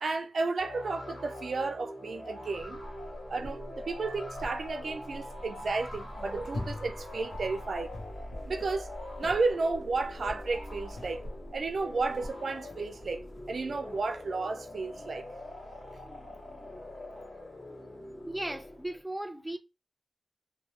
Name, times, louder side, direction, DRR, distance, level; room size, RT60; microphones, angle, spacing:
voice 1, 0.0-2.8 3.3-7.9 8.5-8.9 9.2-11.2 11.5-15.3, right 3 dB, 75° right, 0.3 m, -32 dB
sound 1, 0.6-19.0, left 1 dB, 40° left, 1.7 m, -44 dB
sound 2, 2.6-12.3, equal, 90° left, 1.0 m, -46 dB
sound 3, 5.7-14.0, left 2 dB, 60° left, 0.7 m, -47 dB
voice 2, 18.3-19.6, right 1 dB, 5° right, 0.5 m, -36 dB
2.8 x 2.1 x 3.0 m
wide cardioid pair, 95°, 0 cm